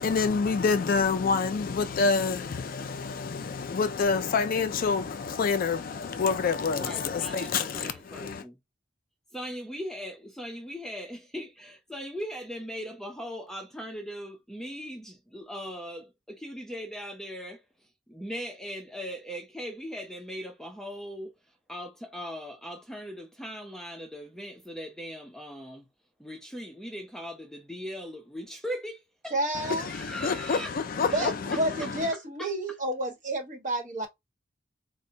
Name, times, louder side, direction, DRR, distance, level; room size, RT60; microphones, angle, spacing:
voice 1, 0.0-8.4 29.5-32.1, left 5 dB, 50° left, 0.4 m, -27 dB
voice 2, 6.7-8.6 9.3-25.9 26.2-29.3 29.9-30.7 31.1-31.9 32.4-32.5, equal, ahead, 0.6 m, -39 dB
voice 3, 29.3-29.9 31.1-34.1, right 1 dB, 45° right, 1.3 m, -30 dB
4.1 x 2.2 x 2.7 m
head